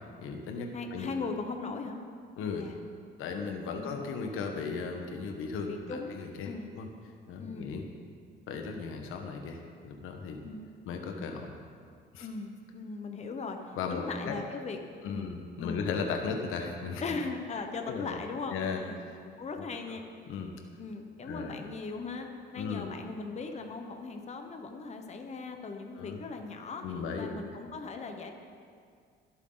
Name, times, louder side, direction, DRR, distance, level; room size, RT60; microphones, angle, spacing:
voice 1, 0.0-1.1 2.4-2.7 3.2-6.9 7.3-7.8 8.5-10.4 10.9-11.5 12.1-12.3 13.8-14.3 15.0-17.0 17.9-18.2 18.5-19.2 19.6-20.0 20.3-20.5 21.2-21.6 22.6-22.9 26.0-26.2 26.8-27.4, left 5 dB, 80° left, 3 dB, 1.4 m, -36 dB
voice 2, 0.7-2.0 2.6-2.8 3.8-4.0 5.7-6.7 7.4-7.7 10.4-10.7 12.2-15.3 15.6-15.8 17.0-19.0 19.4-20.0 20.8-26.8 27.2-28.3, left 4 dB, 30° left, 4 dB, 1.2 m, -39 dB
23.0 x 8.3 x 4.0 m, 2.1 s
cardioid pair, 125°, 21 cm